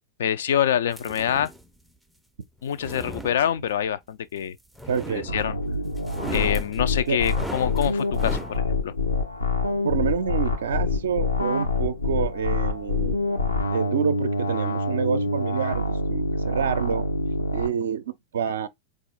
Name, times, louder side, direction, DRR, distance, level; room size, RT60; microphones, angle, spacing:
voice 1, 0.2-1.5 2.6-4.6 5.1-5.6 6.3-8.9, left 9 dB, 60° left, 0.3 m, -25 dB
sound 1, 0.9-1.7 2.6-3.9 4.8-5.6 6.0-8.6, right 1 dB, ahead, 0.5 m, -37 dB
voice 2, 4.9-5.3 7.1-7.2 9.8-13.2 13.7-17.1 17.5-18.7, right 7 dB, 65° right, 0.4 m, -27 dB
sound 2, 5.3-17.7, left 2 dB, 85° left, 0.7 m, -26 dB
4.0 x 2.4 x 3.9 m
figure-of-eight pair, 90°, 0 cm